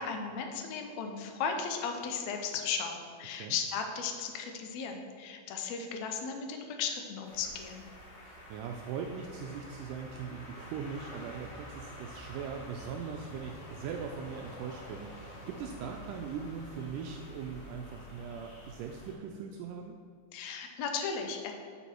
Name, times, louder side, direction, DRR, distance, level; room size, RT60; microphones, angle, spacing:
voice 1, 0.0-7.8 20.3-21.5, left 6 dB, 80° left, 4 dB, 1.6 m, -36 dB
sound 1, 7.2-19.1, equal, 60° left, 4.0 m, -48 dB
voice 2, 8.2-20.0, right 6 dB, 85° right, 3 dB, 1.8 m, -40 dB
8.9 x 7.0 x 4.5 m, 2.2 s
omnidirectional pair, 4.2 m